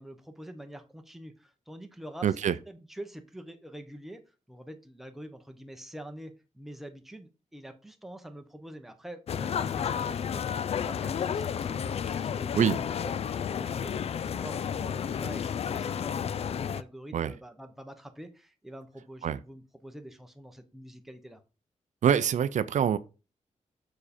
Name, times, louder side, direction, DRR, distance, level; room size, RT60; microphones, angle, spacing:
voice 1, 0.0-2.4 2.7-4.2 4.5-21.4, right 1 dB, ahead, 0.9 m, -46 dB
voice 2, 2.2-2.6 12.5-12.8 17.1-17.3 19.2-19.4 22.0-23.0, right 8 dB, 70° right, 0.5 m, -25 dB
sound 1, 9.3-16.8, left 8 dB, 50° left, 0.4 m, -31 dB
6.6 x 4.8 x 4.3 m
wide cardioid pair, 130°, 13 cm